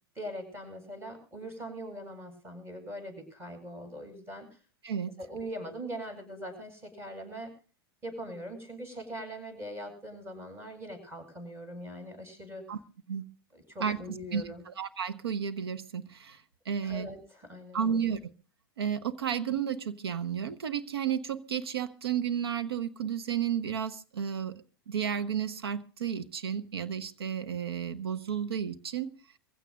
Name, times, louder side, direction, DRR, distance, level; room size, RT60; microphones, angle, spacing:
voice 1, 0.1-4.6 5.2-7.5 8.0-12.6 13.5-14.6 16.8-18.0, equal, 20° right, 5 dB, 8.0 m, -41 dB
voice 2, 4.8-5.2 12.7-12.8 13.1-13.3 13.8-14.0 14.3-17.1 17.7-18.2 18.8-29.1, right 8 dB, 80° right, 10 dB, 1.2 m, -32 dB
24.5 x 16.0 x 2.6 m, 0.37 s
hypercardioid pair, 95°, 13 cm